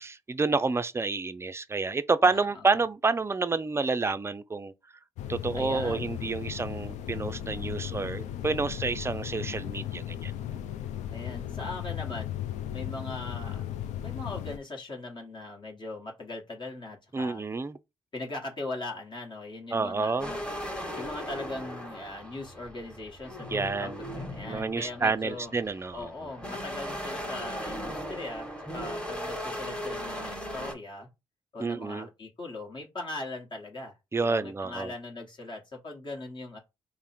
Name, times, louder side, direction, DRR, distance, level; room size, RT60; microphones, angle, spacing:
voice 1, 0.0-4.7 5.3-10.6 17.1-17.8 19.7-20.3 23.5-24.0 24.5-26.1 31.6-32.1 34.1-34.9, right 4 dB, 20° right, 0.4 m, -29 dB
voice 2, 2.3-2.8 5.5-6.2 11.1-12.4 12.7-13.6 14.0-17.4 18.1-20.4 20.9-25.6 25.9-31.1 31.5-34.0 34.2-36.6, left 2 dB, 40° left, 1.2 m, -40 dB
sound 1, 5.2-14.6, left 11 dB, 70° left, 0.5 m, -36 dB
sound 2, 20.2-30.7, equal, 5° left, 1.2 m, -38 dB
3.3 x 2.0 x 4.2 m
hypercardioid pair, 45°, 13 cm